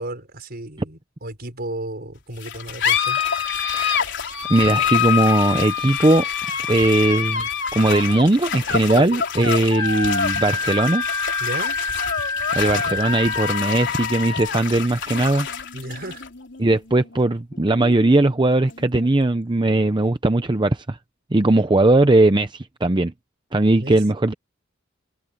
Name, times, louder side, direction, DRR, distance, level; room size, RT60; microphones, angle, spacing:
voice 1, 0.0-3.2 8.9-9.7 11.4-11.8 15.7-16.2 23.7-24.0, right 1 dB, 50° right, 5.2 m, -34 dB
sound 1, 2.4-19.4, left 7 dB, 60° left, 3.9 m, -26 dB
voice 2, 3.7-4.1 4.5-6.3 6.7-11.0 12.5-15.5 16.6-21.0 21.3-23.1 23.5-24.3, right 2 dB, 25° right, 0.7 m, -19 dB
Wind instrument woodwind instrument, 9.8-13.6, left 3 dB, 20° left, 2.2 m, -27 dB
head